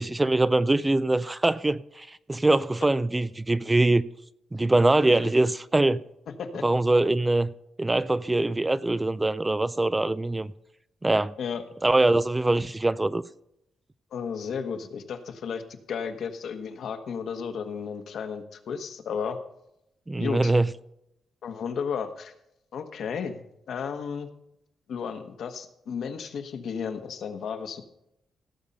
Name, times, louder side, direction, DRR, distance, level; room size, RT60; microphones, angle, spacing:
voice 1, 0.0-4.0 4.5-6.0 6.6-7.5 7.8-10.5 11.0-11.3 11.8-13.2 20.1-20.7, right 2 dB, 15° right, 0.4 m, -23 dB
voice 2, 14.1-15.6 15.9-19.4 20.2-20.5 21.4-22.3 22.7-23.4 23.7-24.3 24.9-27.8, left 6 dB, 70° left, 1.4 m, -33 dB
17.0 x 7.2 x 5.4 m
cardioid pair, 125°, 0 cm